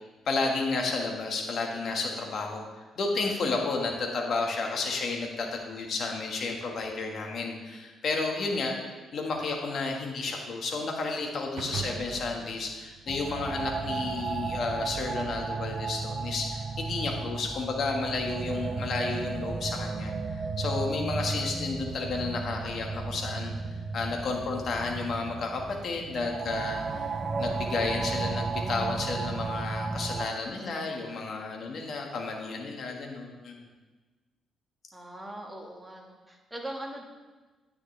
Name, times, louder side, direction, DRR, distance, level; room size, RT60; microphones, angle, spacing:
voice 1, 0.2-33.6, left 3 dB, 60° left, 1 dB, 1.7 m, -32 dB
sound 1, 11.6-14.1, right 7 dB, 75° right, 0.6 m, -41 dB
voice 2, 11.7-12.5 16.9-17.2 26.9-27.0 30.5-30.6 31.5-31.8 34.9-37.0, right 1 dB, 10° right, 0 dB, 1.9 m, -42 dB
sound 2, 13.1-30.3, right 4 dB, 35° right, 0.8 m, -34 dB
9.9 x 9.2 x 3.4 m, 1.3 s
cardioid pair, 90°, 0 cm